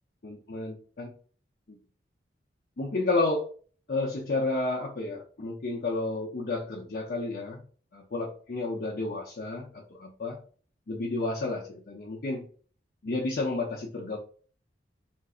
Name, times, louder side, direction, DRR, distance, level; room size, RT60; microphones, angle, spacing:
voice 1, 0.2-1.1 1.7-1.8 2.8-3.5 3.9-7.6 7.9-10.4 10.9-12.5 13.0-14.2, left 2 dB, 55° left, -3 dB, 0.5 m, -31 dB
3.7 x 2.5 x 2.3 m, 0.43 s
head